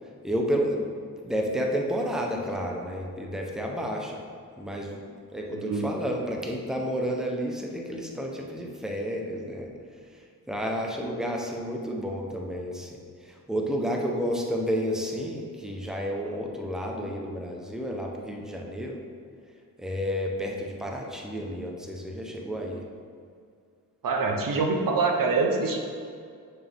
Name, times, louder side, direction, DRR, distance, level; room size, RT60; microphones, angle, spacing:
voice 1, 0.2-0.9 1.2-4.2 4.6-5.0 5.3-9.7 10.5-19.0 19.8-22.8, equal, ahead, 0 dB, 1.1 m, -31 dB
voice 2, 5.5-5.9 24.0-25.8, right 4 dB, 65° right, 2 dB, 1.1 m, -25 dB
8.6 x 6.8 x 3.7 m, 2.2 s
cardioid pair, 95°, 35 cm